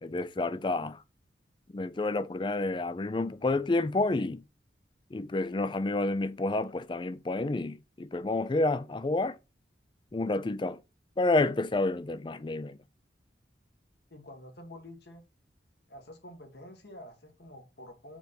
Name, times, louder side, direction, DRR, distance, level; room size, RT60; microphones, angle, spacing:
voice 1, 0.0-1.0 1.7-4.4 5.1-9.4 10.1-10.8 11.2-12.8, left 2 dB, 25° left, 0.4 m, -29 dB
voice 2, 14.1-15.2 15.9-18.2, left 1 dB, 70° left, 1.9 m, -48 dB
6.9 x 4.0 x 4.3 m
head